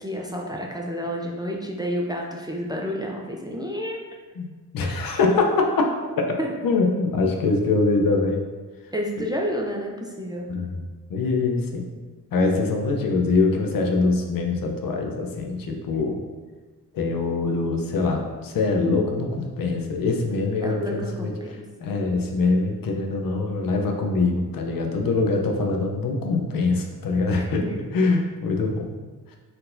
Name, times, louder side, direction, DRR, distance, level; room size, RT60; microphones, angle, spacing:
voice 1, 0.0-4.0 6.4-6.5 8.9-10.5 20.6-21.6 27.4-27.8, equal, 10° right, -1 dB, 0.4 m, -30 dB
voice 2, 4.4-5.9 6.2-6.3 6.6-8.4 10.5-11.8 12.3-16.2 16.9-21.3 21.8-27.6 27.9-28.9, left 3 dB, 70° left, 2 dB, 0.7 m, -23 dB
4.4 x 3.9 x 2.6 m, 1.4 s
wide cardioid pair, 125°, 35 cm